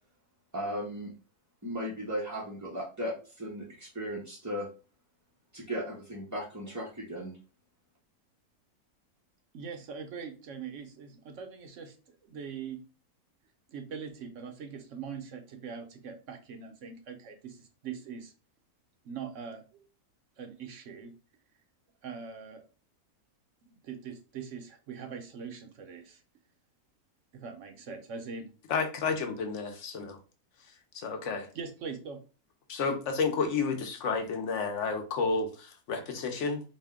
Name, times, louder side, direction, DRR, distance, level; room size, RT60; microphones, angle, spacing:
voice 1, 0.5-1.1 1.6-4.7 5.5-7.4, equal, 20° right, 0.4 m, -36 dB
voice 2, 9.5-12.8 13.7-18.3 19.0-19.8 20.4-21.1 22.0-22.6 23.6-26.2 27.3-28.5 31.5-32.2, right 6 dB, 60° right, 0.9 m, -42 dB
voice 3, 28.7-30.2 30.9-31.5 32.7-36.6, left 4 dB, 60° left, 0.9 m, -31 dB
4.2 x 2.2 x 3.6 m
omnidirectional pair, 1.6 m